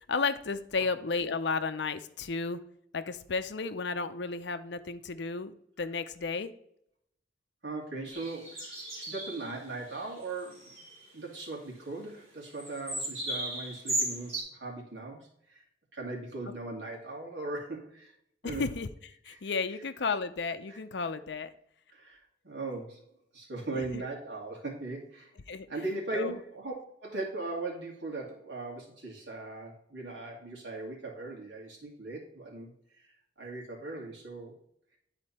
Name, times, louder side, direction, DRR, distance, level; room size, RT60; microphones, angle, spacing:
voice 1, 0.1-2.6 2.9-6.5 18.4-18.9 19.3-21.5 23.7-24.0 25.5-25.7 26.1-26.3, left 4 dB, 65° left, 11 dB, 0.6 m, -33 dB
voice 2, 7.6-10.8 11.1-15.6 15.9-18.1 18.4-18.6 19.3-19.4 20.7-20.8 21.9-22.2 22.4-23.0 23.3-25.3 25.7-26.7 27.0-32.7 33.0-33.1 33.4-34.5, right 2 dB, 75° right, -2 dB, 2.6 m, -39 dB
sound 1, 8.1-9.5 9.9-10.1 10.4-11.0 12.5-14.4, right 1 dB, 35° right, 3.3 m, -36 dB
10.0 x 4.3 x 4.2 m, 0.70 s
head